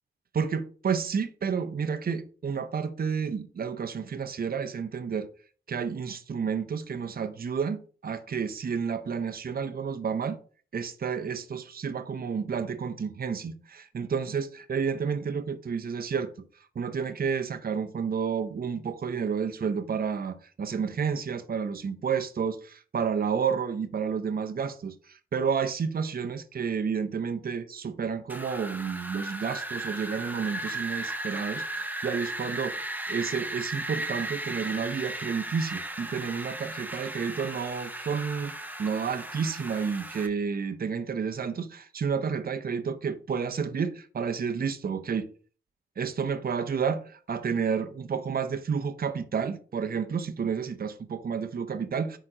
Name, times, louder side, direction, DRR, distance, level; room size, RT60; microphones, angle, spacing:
voice 1, 0.3-5.3 5.7-10.4 10.7-16.3 16.8-38.5 38.8-45.3 46.0-52.2, right 6 dB, 50° right, 0.6 m, -30 dB
Wind, 28.3-40.3, right 1 dB, 10° right, 0.8 m, -36 dB
4.9 x 4.4 x 4.9 m
wide cardioid pair, 85°, 20 cm